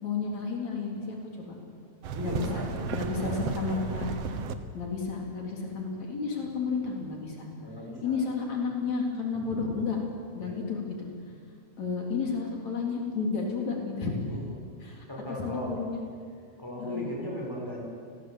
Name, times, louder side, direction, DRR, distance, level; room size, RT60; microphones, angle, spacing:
voice 1, 0.0-1.6 2.2-2.6 2.9-4.1 4.7-7.5 8.0-10.0 10.3-11.1 11.8-14.1 14.8-15.1 15.4-16.0 16.8-17.1, left 5 dB, 70° left, 0 dB, 4.9 m, -32 dB
sound 1, 2.0-4.6, right 6 dB, 65° right, 2.2 m, -34 dB
voice 2, 2.1-2.8 3.1-3.8 7.6-8.2 10.4-10.7 14.3-14.4 15.1-15.7 16.6-17.8, equal, 5° right, -2 dB, 6.3 m, -38 dB
29.0 x 20.5 x 8.3 m, 2.2 s
omnidirectional pair, 3.3 m